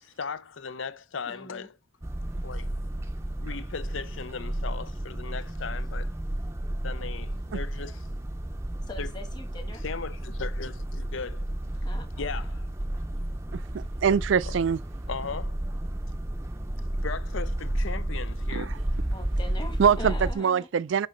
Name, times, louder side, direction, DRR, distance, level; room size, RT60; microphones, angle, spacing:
voice 1, 0.0-1.7 2.4-2.7 3.4-6.1 6.8-8.0 9.0-9.1 9.8-11.5 12.2-12.7 14.5-14.6 15.1-15.6 17.0-18.7, left 5 dB, 75° left, 0.6 m, -37 dB
voice 2, 1.2-1.7 8.9-9.8 11.8-12.3 19.1-20.7, left 1 dB, 20° left, 1.4 m, -42 dB
storm drain, 2.0-20.3, right 1 dB, 15° right, 0.6 m, -32 dB
voice 3, 13.5-14.8 18.5-18.8 19.8-21.1, right 7 dB, 70° right, 0.4 m, -24 dB
6.3 x 4.2 x 5.2 m
head